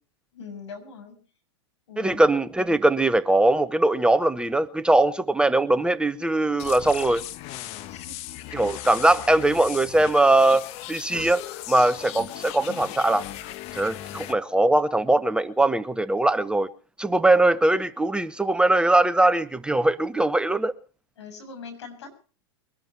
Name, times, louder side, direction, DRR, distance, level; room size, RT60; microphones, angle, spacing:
voice 1, 0.3-1.2 1.9-2.3 7.9-8.3 21.2-22.2, left 5 dB, 75° left, 6.6 m, -42 dB
voice 2, 2.0-7.2 8.5-11.4 11.7-13.2 13.7-16.7 17.0-20.7, right 2 dB, 5° right, 0.8 m, -21 dB
sound 1, 6.6-14.3, left 14 dB, 45° left, 1.2 m, -38 dB
23.0 x 12.5 x 4.5 m
hypercardioid pair, 105°, 15 cm